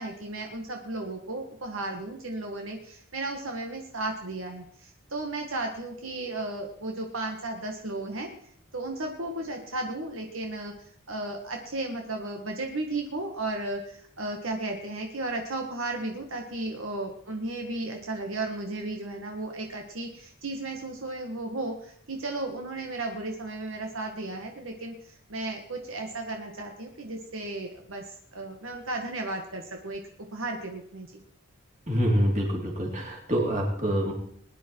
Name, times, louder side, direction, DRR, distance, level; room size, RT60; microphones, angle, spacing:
voice 1, 0.0-8.3 8.7-30.0 30.3-31.1, right 2 dB, 75° right, 3 dB, 1.7 m, -34 dB
voice 2, 31.9-34.1, equal, 35° right, -1 dB, 3.7 m, -26 dB
20.5 x 10.5 x 4.6 m, 0.65 s
head